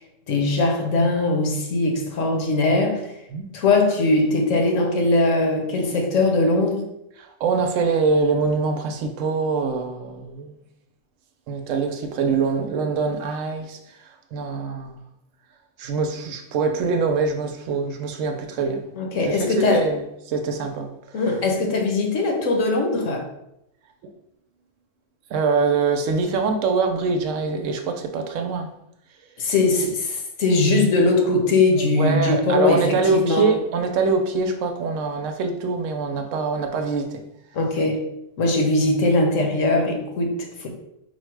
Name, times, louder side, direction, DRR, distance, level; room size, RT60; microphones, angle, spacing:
voice 1, 0.3-3.1 3.5-6.9 18.9-19.9 21.1-23.3 29.4-33.5 37.5-38.1 38.4-40.7, left 2 dB, 85° left, 1.2 m, -20 dB
voice 2, 7.2-10.6 11.5-15.0 15.8-20.9 25.3-28.7 31.8-37.2, right 4 dB, 85° right, 1.0 m, -24 dB
4.5 x 2.1 x 4.6 m
omnidirectional pair, 1.3 m